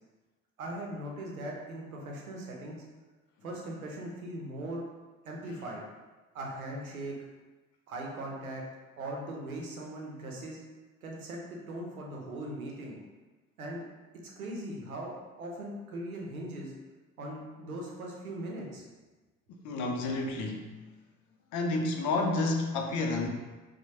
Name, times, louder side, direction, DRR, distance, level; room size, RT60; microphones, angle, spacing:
voice 1, 0.6-2.8 3.4-4.8 5.2-5.8 6.3-7.2 7.9-8.6 9.0-10.6 11.0-13.0 13.6-13.9 14.2-16.7 17.2-18.8, right 1 dB, 80° right, -1 dB, 0.7 m, -39 dB
voice 2, 19.6-20.8 21.5-23.3, left 2 dB, 45° left, 2 dB, 0.6 m, -30 dB
4.3 x 2.2 x 2.7 m, 1.2 s
figure-of-eight pair, 55°, 42 cm